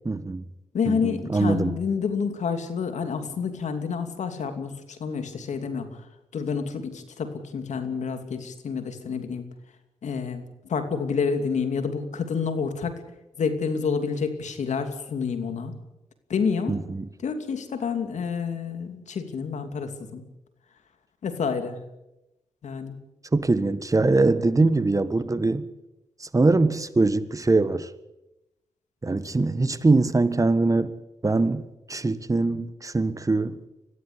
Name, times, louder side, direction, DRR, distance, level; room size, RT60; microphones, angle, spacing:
voice 1, 0.0-0.4 0.9-1.8 16.7-17.1 23.3-25.7 26.2-27.9 29.0-30.9 31.2-33.6, right 3 dB, 25° right, 1.5 m, -22 dB
voice 2, 0.7-6.1 6.3-9.4 10.0-13.0 13.4-15.8 16.3-16.8 17.2-20.2 21.2-21.8 22.6-23.0 24.6-24.7, left 5 dB, 75° left, 2.8 m, -29 dB
23.0 x 15.5 x 8.6 m
cardioid pair, 60°, 12 cm